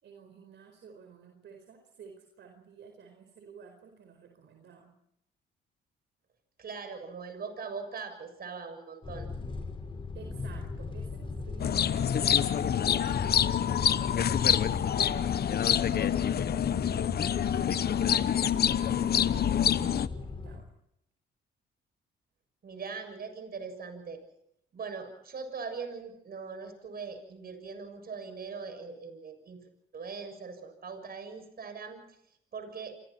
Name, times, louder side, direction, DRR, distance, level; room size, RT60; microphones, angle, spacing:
voice 1, 0.0-5.0 10.1-13.5 13.8-20.7, right 6 dB, 65° right, 4 dB, 4.7 m, -53 dB
voice 2, 6.6-9.3 22.6-24.2 24.7-29.6 29.9-32.0 32.5-33.0, right 5 dB, 50° right, 8 dB, 7.0 m, -41 dB
sound 1, 9.0-20.6, left 3 dB, 25° left, 5.1 m, -38 dB
sound 2, 11.6-20.1, left 9 dB, 50° left, 0.9 m, -26 dB
28.5 x 25.0 x 4.4 m, 0.75 s
cardioid pair, 90°, 20 cm